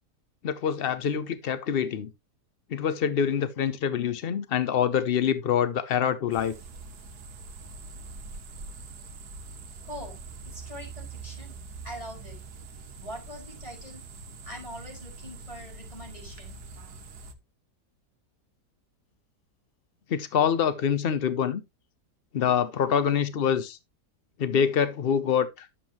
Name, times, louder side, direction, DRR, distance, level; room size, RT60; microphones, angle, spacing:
voice 1, 0.4-2.1 2.7-6.5 20.1-21.6 22.3-23.8 24.4-25.7, left 8 dB, 70° left, 0.5 m, -25 dB
sound 1, 6.3-17.3, right 3 dB, 70° right, 1.7 m, -43 dB
voice 2, 9.8-12.4 13.0-14.0 14.4-16.6, equal, 20° left, 5.6 m, -43 dB
11.5 x 7.3 x 3.0 m
omnidirectional pair, 1.8 m